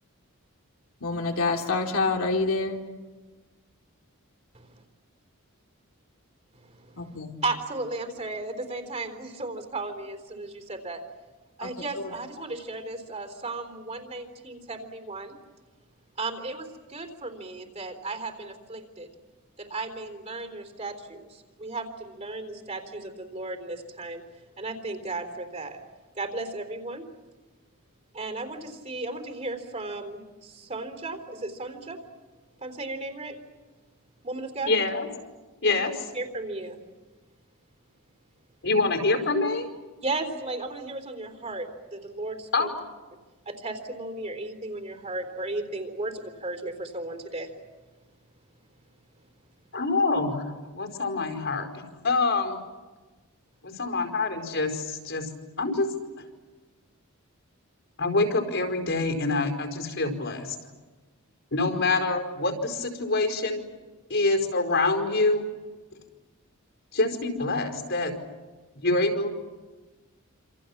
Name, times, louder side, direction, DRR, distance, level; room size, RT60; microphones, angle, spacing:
voice 1, 1.0-2.8 7.0-7.3 11.6-11.7 12.0-12.1, left 3 dB, 70° left, 3.0 m, -27 dB
voice 2, 6.5-11.0 11.6-15.4 16.2-19.1 19.6-24.2 24.6-25.8 26.2-27.0 28.1-32.0 32.6-33.4 34.2-34.7 36.1-36.8 40.0-42.7 43.5-47.5, right 2 dB, 30° right, 3.8 m, -35 dB
voice 3, 34.7-35.1 35.6-36.1 38.6-39.7 42.5-42.7 49.7-52.6 53.6-55.3 55.6-56.2 58.0-60.6 61.5-63.6 64.1-65.4 66.9-68.1 68.7-69.3, left 3 dB, 55° left, 4.8 m, -26 dB
28.0 x 27.5 x 7.3 m
head